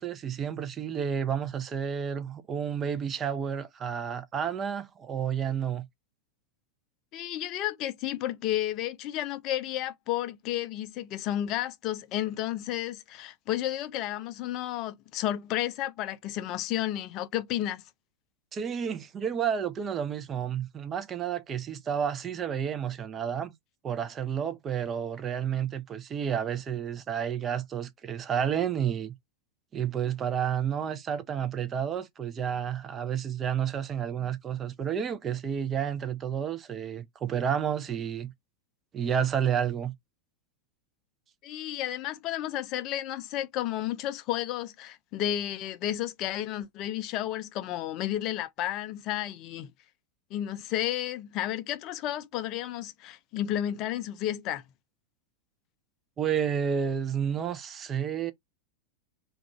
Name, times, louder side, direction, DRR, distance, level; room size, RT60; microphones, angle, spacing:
voice 1, 0.0-5.9 18.5-23.5 23.8-29.2 29.7-38.3 38.9-39.9 56.2-58.3, right 8 dB, 25° right, 0.4 m, -30 dB
voice 2, 7.1-17.8 41.4-49.7 50.3-54.6, left 12 dB, 40° left, 0.4 m, -32 dB
2.3 x 2.2 x 3.0 m
figure-of-eight pair, 90°, 0 cm